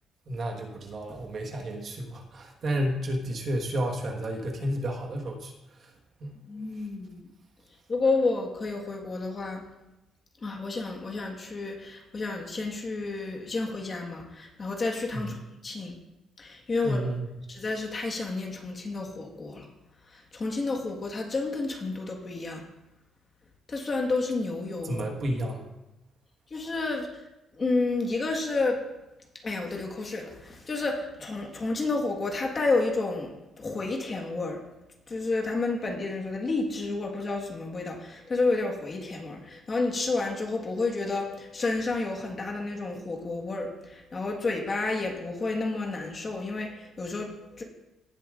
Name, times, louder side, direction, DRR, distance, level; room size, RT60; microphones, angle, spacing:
voice 1, 0.3-5.5 6.2-6.3 15.1-15.3 16.8-17.2 24.8-25.7, right 1 dB, 45° right, 2 dB, 1.4 m, -31 dB
voice 2, 6.5-7.2 7.9-9.6 10.4-15.4 15.6-15.9 16.4-17.1 17.5-19.7 20.1-22.6 23.7-25.0 26.5-27.1 27.6-28.8 29.4-34.6 35.1-47.6, left 3 dB, 30° left, 0 dB, 1.5 m, -30 dB
18.0 x 7.1 x 2.5 m, 0.95 s
cardioid pair, 145°, 0 cm